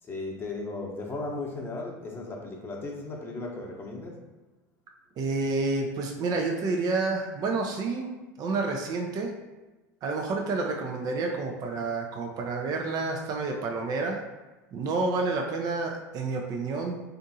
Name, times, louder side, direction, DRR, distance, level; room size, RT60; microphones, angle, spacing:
voice 1, 0.0-4.2, left 2 dB, 25° left, -1 dB, 0.8 m, -36 dB
voice 2, 5.2-8.1 8.4-9.3 10.0-14.2 14.7-17.0, right 3 dB, 45° right, 1 dB, 0.5 m, -29 dB
3.5 x 2.5 x 2.7 m, 1.2 s
hypercardioid pair, 90°, 9 cm